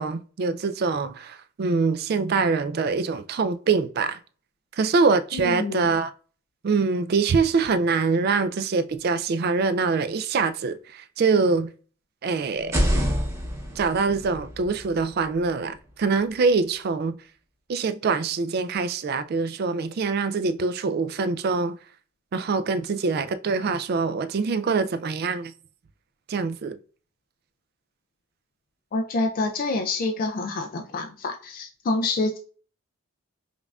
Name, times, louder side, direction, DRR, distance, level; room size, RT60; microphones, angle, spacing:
voice 1, 0.0-4.2 4.8-6.1 6.6-11.7 12.2-12.8 13.8-17.2 17.7-21.8 22.3-25.5 26.3-26.8, right 4 dB, 45° right, 0.3 m, -24 dB
voice 2, 5.3-5.9 28.9-32.4, left 2 dB, 40° left, 0.3 m, -27 dB
sound 1, 12.6-16.4, equal, 15° right, 0.7 m, -28 dB
5.2 x 2.4 x 2.3 m
head